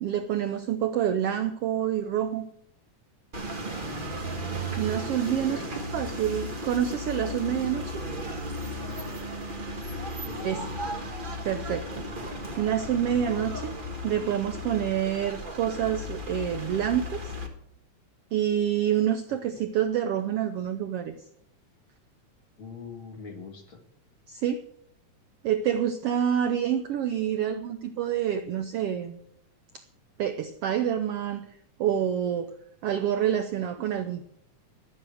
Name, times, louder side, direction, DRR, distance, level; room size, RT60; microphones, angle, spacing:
voice 1, 0.0-2.5 4.8-5.6 5.9-8.0 10.4-10.6 11.4-12.0 12.6-13.8 14.0-17.3 18.3-21.2 24.3-24.6 25.4-29.2 30.2-31.4 31.8-32.5 32.8-34.3, right 10 dB, 85° right, 9 dB, 1.3 m, -27 dB
sound 1, 3.3-17.5, equal, 35° right, 0.7 m, -35 dB
voice 2, 5.2-5.7 10.2-10.7 19.5-19.6 22.6-23.8, left 5 dB, 45° left, 3 dB, 2.4 m, -42 dB
12.0 x 8.5 x 7.8 m, 0.68 s
omnidirectional pair, 3.6 m